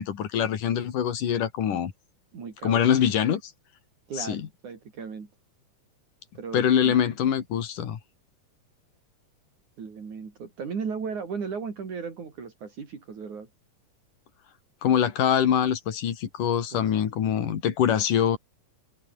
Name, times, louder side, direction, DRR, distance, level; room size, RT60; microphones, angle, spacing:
voice 1, 0.0-1.9 2.6-3.4 4.2-4.5 6.5-8.0 14.8-18.4, left 9 dB, 85° left, 3.8 m, -24 dB
voice 2, 2.3-2.8 4.1-5.3 6.4-7.0 9.8-13.5 16.8-17.1, right 5 dB, 70° right, 5.5 m, -36 dB
omnidirectional pair, 3.6 m